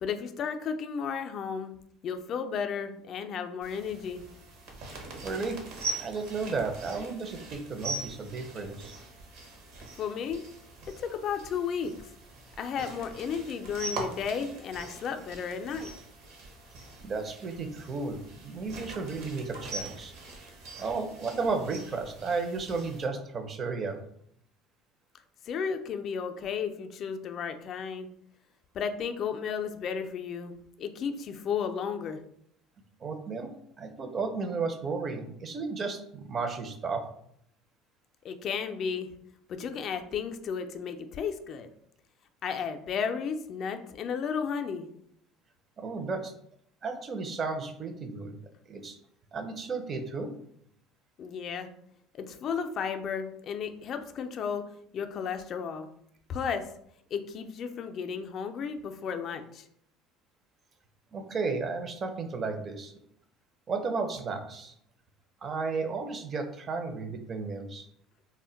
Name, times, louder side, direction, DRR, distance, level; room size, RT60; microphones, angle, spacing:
voice 1, 0.0-1.7 2.0-4.2 10.0-10.4 11.0-11.9 12.6-15.9 25.5-28.1 28.7-32.2 38.2-39.1 39.5-41.7 42.4-44.9 51.2-51.7 52.1-54.6 54.9-55.9 56.3-56.7 57.1-59.7, left 6 dB, 50° left, 6 dB, 0.3 m, -33 dB
sound 1, 3.6-23.0, right 2 dB, 70° right, 0.8 m, -42 dB
voice 2, 5.2-5.6 6.0-8.9 17.0-20.1 20.8-24.0 33.0-37.0 45.8-46.3 46.8-48.4 48.7-49.0 49.3-50.3 61.1-62.9 63.7-64.7 65.4-67.9, right 4 dB, 35° right, 6 dB, 0.5 m, -33 dB
2.1 x 2.1 x 3.8 m, 0.70 s
supercardioid pair, 100°, 0 cm